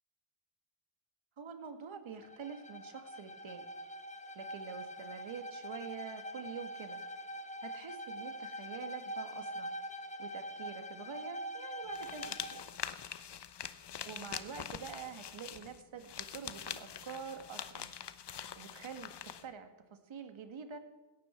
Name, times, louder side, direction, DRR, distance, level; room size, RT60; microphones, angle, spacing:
voice 1, 1.4-3.6 4.4-7.0 7.6-9.7 10.2-12.6 14.0-17.9 18.6-20.8, right 6 dB, 65° right, 8 dB, 2.0 m, -46 dB
Bowed string instrument, 2.2-12.7, equal, 15° left, 1.0 m, -44 dB
sound 1, 11.9-19.5, left 9 dB, 55° left, 1.0 m, -44 dB
17.5 x 14.0 x 4.5 m, 1.2 s
cardioid pair, 70°, 50 cm